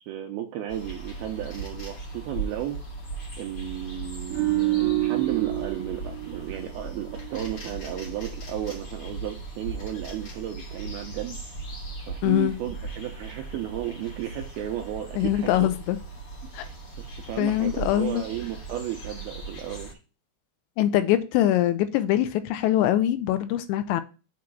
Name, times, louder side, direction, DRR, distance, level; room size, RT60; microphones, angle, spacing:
voice 1, 0.0-2.8 3.4-11.4 12.1-15.7 16.6-19.9, right 12 dB, 80° right, 2.3 m, -34 dB
sound 1, 0.7-19.9, right 3 dB, 45° left, 1.9 m, -38 dB
sound 2, 4.3-7.6 7.9-8.1, right 16 dB, 55° right, 3.4 m, -28 dB
voice 2, 12.2-12.6 15.2-16.0 16.5-16.7 17.4-18.2 20.8-24.0, left 12 dB, 85° left, 2.7 m, -23 dB
8.5 x 3.1 x 6.0 m
omnidirectional pair, 5.1 m